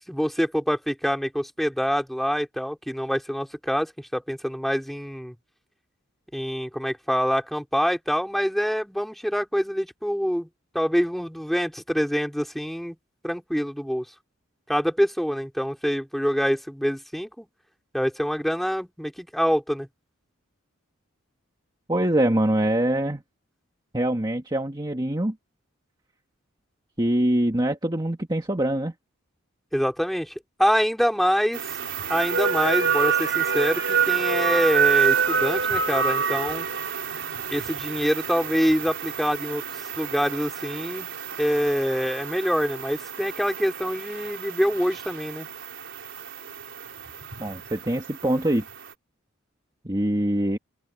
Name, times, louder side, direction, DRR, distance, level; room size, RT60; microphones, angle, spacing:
voice 1, 0.1-5.3 6.3-10.5 10.7-13.0 13.2-14.0 14.7-17.5 17.9-19.9 29.7-30.3 30.6-31.6 32.1-36.7 37.5-39.6 40.0-41.1 41.4-45.5, equal, ahead, 4.4 m, -25 dB
voice 2, 21.9-23.2 23.9-25.3 27.0-28.9 47.4-48.6 49.8-50.6, right 1 dB, 20° right, 1.7 m, -24 dB
sound 1, 31.5-48.9, right 7 dB, 60° right, 4.9 m, -28 dB
open air
head